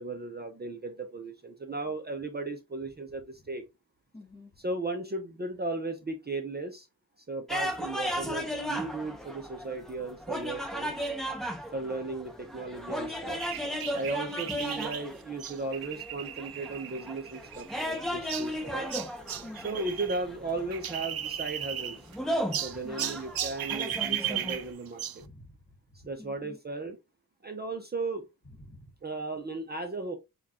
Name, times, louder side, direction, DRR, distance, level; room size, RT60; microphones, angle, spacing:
voice 1, 0.0-3.6 4.6-6.9 7.2-10.9 11.7-13.5 13.9-18.9 19.6-22.1 22.6-25.2 25.9-27.0 27.4-28.3 29.0-30.2, right 3 dB, 25° right, 4 dB, 0.6 m, -36 dB
voice 2, 4.1-4.5 19.4-19.8 22.4-22.5 22.7-23.2 25.2-25.6 26.2-26.6 28.6-28.9, left 2 dB, 25° left, 3 dB, 1.6 m, -48 dB
sound 1, 7.5-24.7, equal, ahead, 0.8 m, -36 dB
sound 2, 13.4-20.2 20.5-22.2 22.5-25.2, right 10 dB, 70° right, 0.5 m, -36 dB
7.0 x 2.4 x 2.9 m, 0.24 s
wide cardioid pair, 140°, 37 cm